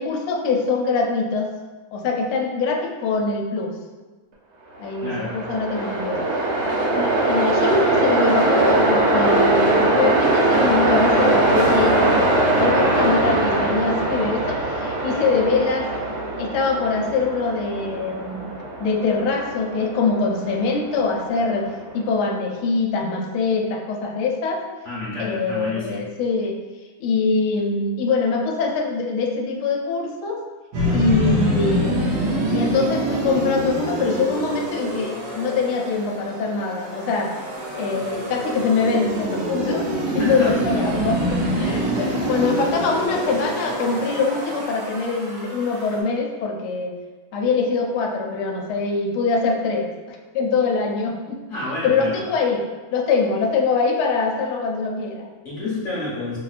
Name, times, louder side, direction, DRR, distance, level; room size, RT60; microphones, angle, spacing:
voice 1, 0.0-1.5 1.9-3.7 4.8-6.2 6.9-12.3 12.6-15.9 16.4-18.5 18.8-24.6 25.2-26.6 27.0-30.4 30.9-37.3 37.8-46.9 47.3-52.6 52.9-55.3, left 4 dB, 80° left, 1 dB, 1.4 m, -23 dB
Train, 4.8-22.0, right 2 dB, 70° right, 0.9 m, -21 dB
voice 2, 5.0-5.3 24.8-26.1 40.2-40.5 41.3-41.4 51.5-52.2 55.4-56.4, left 2 dB, 45° left, -7 dB, 1.1 m, -29 dB
sound 1, 30.7-46.0, right 1 dB, 85° right, 1.7 m, -26 dB
5.7 x 2.1 x 2.4 m, 1.3 s
omnidirectional pair, 2.4 m